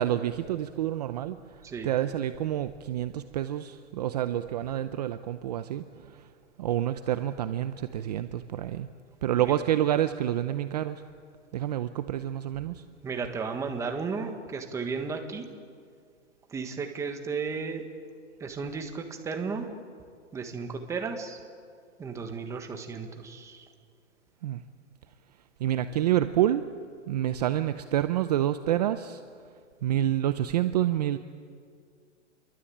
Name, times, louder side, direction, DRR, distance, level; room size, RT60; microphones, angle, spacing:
voice 1, 0.0-6.3 6.6-8.9 9.2-11.0 11.5-12.8 24.4-24.6 25.6-26.7 27.1-29.2 29.8-31.2, right 12 dB, 35° right, 10 dB, 0.7 m, -28 dB
voice 2, 13.0-15.5 16.5-17.8 18.4-19.7 20.3-21.4 22.0-23.7, right 5 dB, 10° right, 5 dB, 1.5 m, -34 dB
28.0 x 23.0 x 8.6 m, 2.1 s
hypercardioid pair, 165°, 37 cm